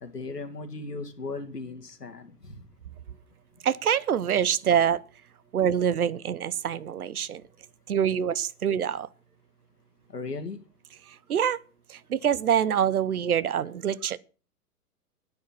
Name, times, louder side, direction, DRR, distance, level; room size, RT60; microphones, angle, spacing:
voice 1, 0.0-2.7 10.1-10.6, left 3 dB, 85° left, 2.3 m, -37 dB
voice 2, 3.6-5.0 5.5-7.4 7.9-9.1 11.3-11.6 11.9-14.2, right 8 dB, 65° right, 1.0 m, -25 dB
10.5 x 9.8 x 7.4 m
figure-of-eight pair, 115°, 47 cm